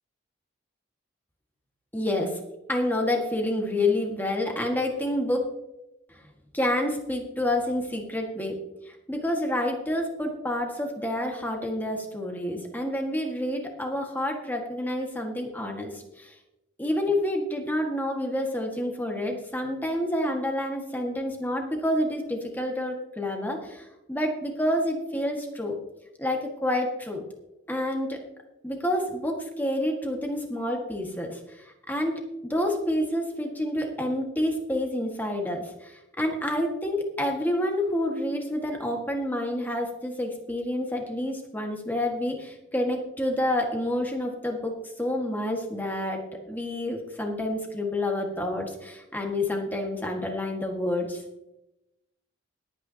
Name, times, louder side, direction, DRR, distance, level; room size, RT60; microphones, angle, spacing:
voice 1, 1.9-2.3 2.7-5.5 6.5-8.6 8.9-16.3 16.8-25.7 26.2-27.2 27.7-28.2 28.6-32.1 32.4-46.2 46.5-51.2, left 1 dB, 10° left, 2 dB, 1.7 m, -28 dB
20.0 x 9.0 x 2.9 m, 0.93 s
head